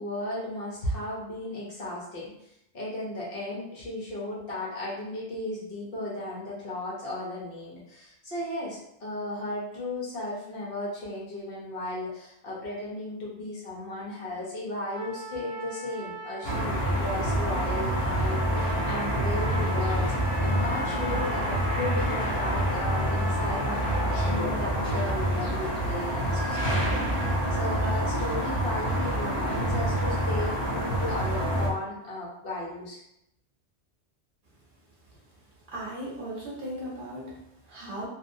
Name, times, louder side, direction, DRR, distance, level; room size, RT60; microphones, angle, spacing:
voice 1, 0.0-2.3 2.7-20.1 20.4-33.0, left 1 dB, 60° left, -5 dB, 1.0 m, -35 dB
Trumpet, 14.9-24.4, left 1 dB, ahead, 0.8 m, -39 dB
sound 1, 16.4-31.7, equal, 30° left, 0.6 m, -27 dB
voice 2, 35.7-38.1, right 1 dB, 55° right, -5 dB, 0.9 m, -37 dB
2.7 x 2.0 x 2.6 m, 0.79 s
omnidirectional pair, 1.1 m